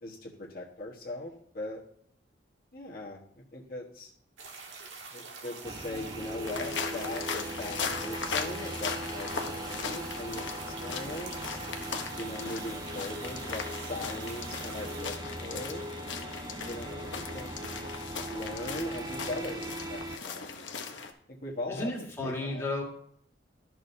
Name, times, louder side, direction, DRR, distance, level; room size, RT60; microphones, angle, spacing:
voice 1, 0.0-1.8 2.7-3.2 3.5-4.1 5.1-11.6 12.1-15.1 15.4-15.8 16.6-17.5 18.3-20.6 21.4-21.9 22.2-22.7, left 2 dB, 50° left, -3 dB, 1.4 m, -40 dB
sound 1, 4.4-15.1, right 4 dB, 85° right, 1.6 m, -46 dB
sound 2, 5.6-20.2, right 1 dB, 20° right, 0.4 m, -40 dB
sound 3, 6.5-21.1, left 5 dB, 85° left, 0.9 m, -38 dB
voice 2, 21.7-22.8, left 2 dB, 15° left, -3 dB, 1.7 m, -33 dB
13.0 x 6.2 x 2.7 m, 0.65 s
head